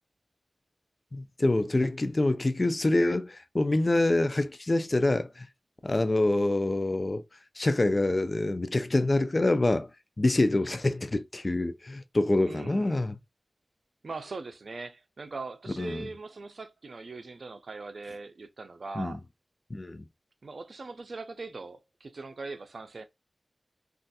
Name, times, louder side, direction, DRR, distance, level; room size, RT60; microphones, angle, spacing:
voice 1, 1.1-5.5 5.8-7.2 7.6-9.9 10.2-13.1 15.8-16.1 19.0-19.2 19.7-20.0, left 2 dB, 40° left, 0.3 m, -26 dB
voice 2, 12.4-13.0 14.0-19.2 20.4-23.0, right 3 dB, 75° right, 0.4 m, -41 dB
3.1 x 2.4 x 2.7 m
wide cardioid pair, 65°, 0 cm